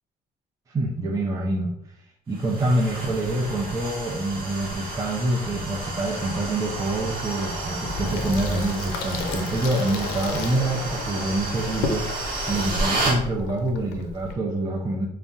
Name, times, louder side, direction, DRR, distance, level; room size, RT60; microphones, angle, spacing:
voice 1, 0.7-1.7 2.3-12.1 12.5-15.1, right 2 dB, 20° right, -3 dB, 0.5 m, -26 dB
sound 1, 2.3-13.2, right 2 dB, 60° right, 0.9 m, -31 dB
Water tap faucet / Sink (filling or washing), 7.9-14.4, left 3 dB, 85° left, 0.5 m, -33 dB
2.6 x 2.1 x 3.6 m, 0.71 s
cardioid pair, 110°, 17 cm